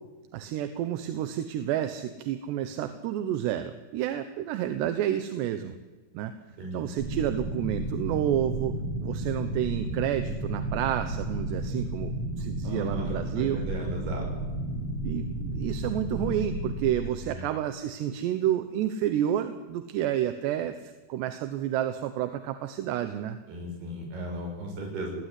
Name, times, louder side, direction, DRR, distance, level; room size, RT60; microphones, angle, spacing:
voice 1, 0.3-5.7 6.1-6.3 6.7-13.6 15.0-23.4, right 11 dB, 75° right, 9 dB, 3.0 m, -30 dB
voice 2, 6.6-7.0 12.6-14.3 17.3-17.5 23.5-25.1, equal, 55° right, 1 dB, 8.1 m, -36 dB
sound 1, 7.0-17.0, right 1 dB, 25° right, 6.2 m, -32 dB
28.5 x 19.0 x 9.9 m, 1.3 s
omnidirectional pair, 5.4 m